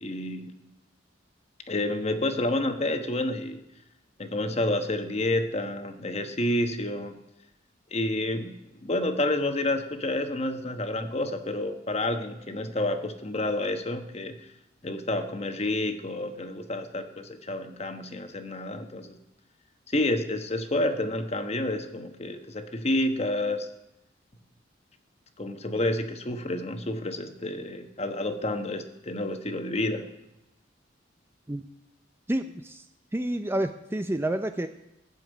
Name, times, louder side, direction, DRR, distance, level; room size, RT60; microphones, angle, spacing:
voice 1, 0.0-0.5 1.7-3.6 4.2-7.2 7.9-14.4 14.8-19.2 19.9-23.7 25.4-30.1, left 1 dB, 35° left, 7 dB, 1.1 m, -29 dB
voice 2, 32.3-32.8 33.1-34.7, right 1 dB, 10° right, 8 dB, 0.5 m, -29 dB
16.0 x 7.1 x 9.2 m, 0.91 s
head